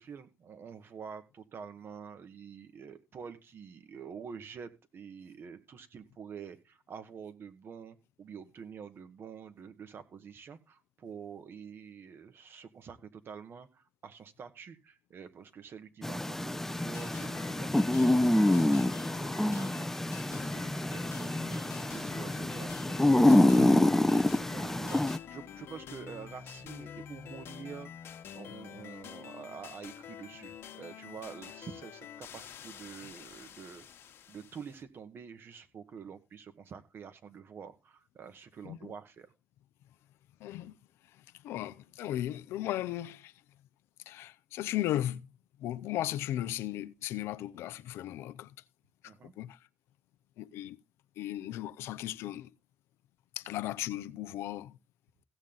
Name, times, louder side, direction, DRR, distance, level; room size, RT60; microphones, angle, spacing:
voice 1, 0.0-20.0 20.2-22.7 23.0-23.7 24.0-33.9 34.3-39.3 49.0-49.3, right 6 dB, 60° right, 1.8 m, -47 dB
sound 1, 16.0-25.2, left 1 dB, 10° left, 0.6 m, -26 dB
sound 2, 16.7-34.8, left 8 dB, 70° left, 1.3 m, -47 dB
voice 2, 23.2-23.9 38.6-38.9 40.4-40.7 41.4-43.3 44.1-45.3 45.6-48.5 49.0-49.6 50.4-50.8 51.2-52.5 53.4-54.8, left 13 dB, 85° left, 0.6 m, -36 dB
16.0 x 7.2 x 3.9 m
supercardioid pair, 60°, 4 cm